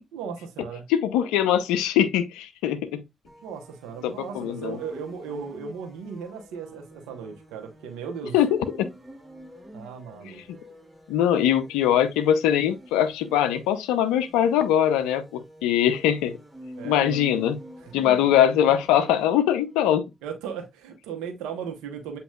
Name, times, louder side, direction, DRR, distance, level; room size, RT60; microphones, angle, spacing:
voice 1, 0.1-0.8 3.4-8.4 9.7-10.4 16.8-17.2 17.8-17.9 20.2-22.2, right 6 dB, 85° right, 1.0 m, -36 dB
voice 2, 0.9-3.0 4.0-4.8 8.3-8.6 11.1-16.4 16.8-17.6 17.9-20.1, left 10 dB, 85° left, 0.5 m, -22 dB
sound 1, 3.3-19.9, equal, 15° right, 1.8 m, -47 dB
7.5 x 2.9 x 2.3 m
hypercardioid pair, 40°, 0 cm